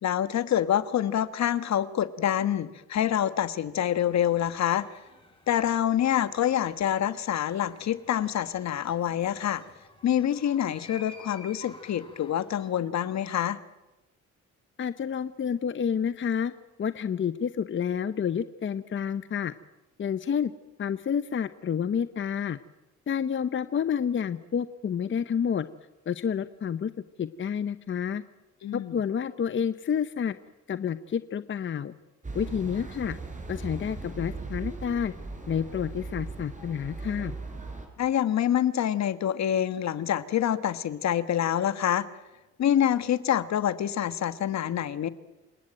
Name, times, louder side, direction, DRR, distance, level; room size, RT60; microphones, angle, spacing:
voice 1, 0.0-4.9 5.5-9.6 10.0-13.6 28.6-29.0 38.0-42.1 42.6-45.1, left 10 dB, 65° left, 14 dB, 1.4 m, -26 dB
sound 1, 4.0-12.7, left 3 dB, 20° left, 6.1 m, -52 dB
voice 2, 14.8-16.5 16.8-19.5 20.0-20.5 20.8-22.6 23.1-25.7 26.1-26.9 27.2-28.2 28.7-30.3 30.7-31.9 32.3-33.2 33.5-35.1 35.5-37.4, left 7 dB, 40° left, 13 dB, 0.8 m, -29 dB
sound 2, 32.2-37.9, right 3 dB, 25° right, 5.2 m, -38 dB
28.5 x 18.5 x 9.1 m, 1.1 s
cardioid pair, 90°, 30 cm